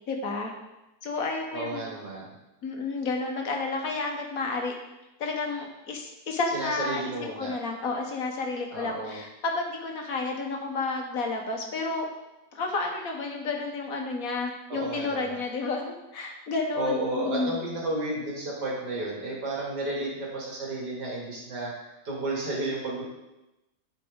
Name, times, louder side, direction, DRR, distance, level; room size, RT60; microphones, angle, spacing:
voice 1, 0.1-0.5 1.0-1.9 2.6-4.7 5.2-12.1 12.5-17.6, left 3 dB, 60° left, 2 dB, 1.4 m, -31 dB
voice 2, 1.5-2.3 6.5-7.5 8.7-9.2 14.7-15.4 16.7-23.0, right 2 dB, 85° right, -4 dB, 2.7 m, -32 dB
11.5 x 5.1 x 3.6 m, 0.97 s
omnidirectional pair, 1.7 m